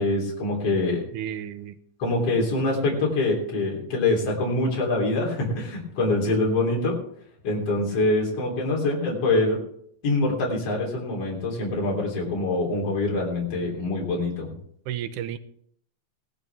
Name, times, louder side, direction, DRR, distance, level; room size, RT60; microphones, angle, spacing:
voice 1, 0.0-1.0 2.0-7.0 7.4-9.6 10.0-14.5, left 2 dB, 50° left, -3 dB, 4.5 m, -24 dB
voice 2, 1.1-1.8 14.9-15.4, right 10 dB, 90° right, 11 dB, 2.3 m, -32 dB
18.0 x 12.0 x 3.5 m, 0.67 s
omnidirectional pair, 3.6 m